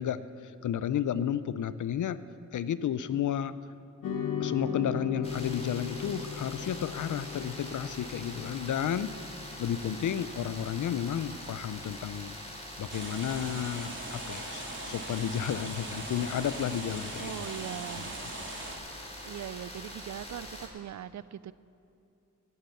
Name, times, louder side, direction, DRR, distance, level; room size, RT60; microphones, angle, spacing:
voice 1, 0.0-2.2 2.5-3.5 4.4-9.1 9.6-12.4 12.8-17.5 18.0-18.1, left 9 dB, 65° left, 15 dB, 0.6 m, -32 dB
sound 1, 4.0-12.5, left 6 dB, 90° left, 1.5 m, -39 dB
sound 2, 5.2-20.7, left 1 dB, 20° left, 3.6 m, -44 dB
sound 3, 12.9-18.8, right 2 dB, 35° right, 3.2 m, -41 dB
voice 2, 17.2-18.2 19.2-21.5, right 10 dB, 60° right, 17 dB, 0.5 m, -40 dB
18.5 x 9.4 x 7.1 m, 2.7 s
cardioid pair, 55°, 32 cm